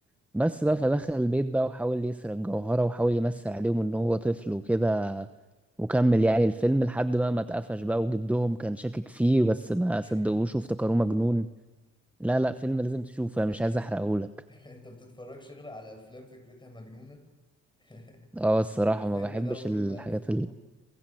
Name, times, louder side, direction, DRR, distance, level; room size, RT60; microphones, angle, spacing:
voice 1, 0.3-5.3 5.8-11.5 12.2-14.3 18.3-20.5, right 1 dB, 5° right, 12 dB, 0.9 m, -26 dB
voice 2, 10.0-10.3 13.4-13.9 14.5-17.2 17.8-18.3 18.8-20.5, left 1 dB, 15° left, 5 dB, 7.8 m, -46 dB
27.5 x 27.0 x 7.8 m, 1.2 s
cardioid pair, 90°, 30 cm